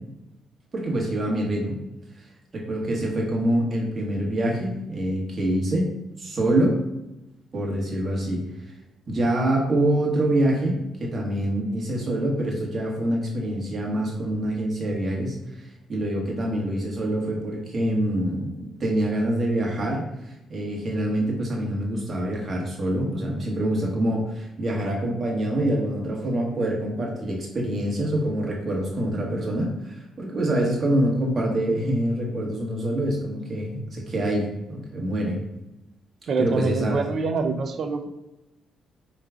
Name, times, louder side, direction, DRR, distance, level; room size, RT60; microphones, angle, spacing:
voice 1, 0.7-1.7 2.5-5.9 6.2-6.8 7.5-8.4 9.1-35.4 36.4-37.0, right 1 dB, 40° right, -2 dB, 1.4 m, -25 dB
voice 2, 36.3-38.1, right 4 dB, 55° right, 7 dB, 0.5 m, -25 dB
4.7 x 3.1 x 2.4 m, 0.95 s
supercardioid pair, 70°, 0 cm